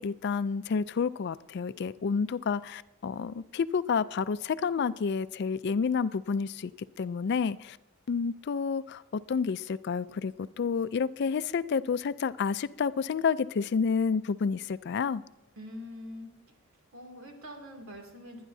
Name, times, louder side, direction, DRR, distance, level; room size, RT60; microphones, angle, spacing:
voice 1, 0.0-7.8 8.1-15.2, left 5 dB, 55° left, 16 dB, 0.4 m, -30 dB
voice 2, 15.5-16.3 16.9-18.4, left 1 dB, 80° right, 2 dB, 2.6 m, -44 dB
22.5 x 10.0 x 2.7 m, 0.96 s
head